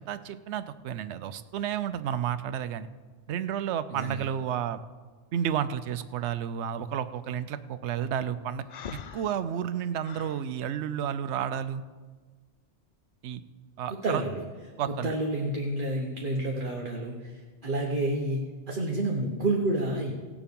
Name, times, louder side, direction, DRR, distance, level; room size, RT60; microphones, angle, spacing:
voice 1, 0.0-2.9 3.3-4.8 5.3-8.6 9.1-11.8 13.2-13.4 13.8-14.2 14.8-15.1, right 9 dB, 70° right, 12 dB, 0.9 m, -31 dB
voice 2, 3.9-4.3 13.9-14.4 15.0-20.1, right 2 dB, 45° right, 0 dB, 1.2 m, -29 dB
Breathing, 8.7-10.4, left 7 dB, 55° left, 0.5 m, -42 dB
17.5 x 7.1 x 5.3 m, 1.5 s
omnidirectional pair, 1.2 m